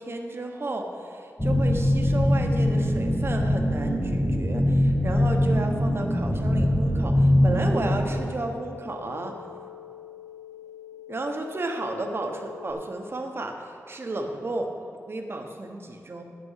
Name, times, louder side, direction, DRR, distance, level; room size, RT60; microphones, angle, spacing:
voice 1, 0.0-9.3 11.1-14.7 15.1-16.2, right 2 dB, 45° right, 3 dB, 1.3 m, -32 dB
sound 1, 1.4-8.2, left 1 dB, 10° left, 1.8 m, -22 dB
sound 2, 7.7-12.7, left 6 dB, 70° right, 2.0 m, -44 dB
13.0 x 6.9 x 5.8 m, 2.4 s
cardioid pair, 70°, 5 cm